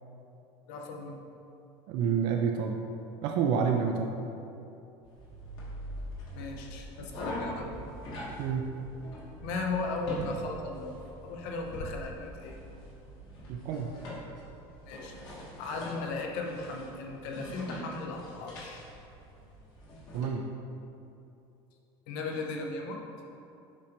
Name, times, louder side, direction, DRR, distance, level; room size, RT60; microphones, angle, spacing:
voice 1, 0.7-1.2 6.3-7.8 9.4-11.0 11.2-12.6 14.8-15.1 15.6-18.8 22.1-23.0, left 3 dB, 65° left, 1 dB, 0.8 m, -36 dB
voice 2, 1.9-2.8 3.2-4.1 8.4-8.7 13.5-13.9 20.1-20.5, right 6 dB, 50° right, 3 dB, 0.4 m, -28 dB
sound 1, 5.0-20.2, equal, 40° left, 1.3 m, -43 dB
7.3 x 5.1 x 3.0 m, 2.8 s
cardioid pair, 175°, 11 cm